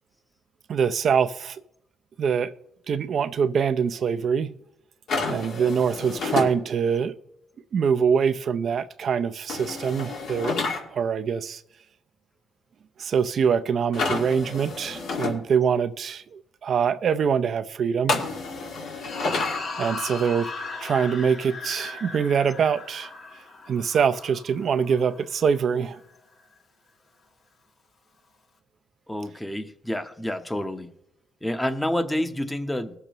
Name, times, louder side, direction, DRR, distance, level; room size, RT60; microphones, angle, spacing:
voice 1, 0.7-1.6 2.2-2.5 2.9-4.5 5.3-7.1 7.7-10.6 10.9-11.6 13.0-18.2 19.8-20.5 20.8-23.1 23.7-26.0, right 7 dB, 55° right, 0.5 m, -24 dB
sound 1, 5.1-6.5 9.5-10.8 13.9-15.3 18.1-19.6, left 3 dB, 75° left, 2.0 m, -29 dB
sound 2, 19.0-25.6, left 3 dB, 60° left, 1.4 m, -37 dB
voice 2, 29.1-30.9 31.4-32.9, left 1 dB, 10° left, 0.9 m, -28 dB
20.0 x 6.7 x 3.0 m
cardioid pair, 90°, 0 cm